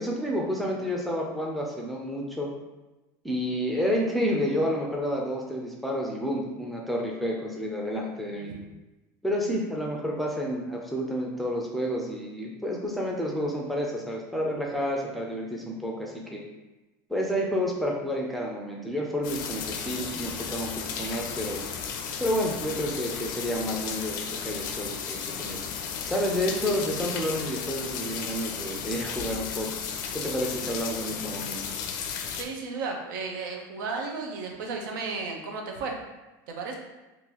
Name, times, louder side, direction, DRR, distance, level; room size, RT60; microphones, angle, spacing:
voice 1, 0.0-2.5 3.2-8.5 9.2-16.4 17.1-21.6 22.2-25.6 26.0-29.7 30.1-31.6, equal, ahead, -2 dB, 0.4 m, -30 dB
sound 1, 19.2-32.4, left 6 dB, 85° left, 0.5 m, -34 dB
voice 2, 32.3-36.0 36.5-36.8, right 4 dB, 85° right, 1 dB, 0.7 m, -34 dB
3.7 x 2.5 x 2.9 m, 1.1 s
supercardioid pair, 150°, 10 cm